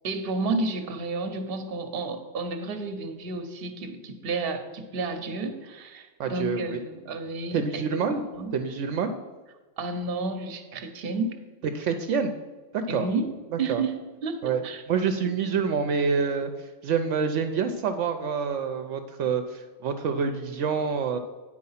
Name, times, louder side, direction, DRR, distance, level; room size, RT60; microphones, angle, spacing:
voice 1, 0.0-8.5 9.8-11.4 12.9-13.3 13.6-14.4 14.6-14.8, right 3 dB, 55° right, 8 dB, 1.0 m, -31 dB
voice 2, 6.2-6.8 7.5-8.2 8.5-9.1 11.7-12.3 12.7-13.1 13.5-13.8 14.4-21.2, right 6 dB, 75° right, 7 dB, 0.9 m, -27 dB
9.5 x 4.7 x 5.6 m, 1.3 s
omnidirectional pair, 1.3 m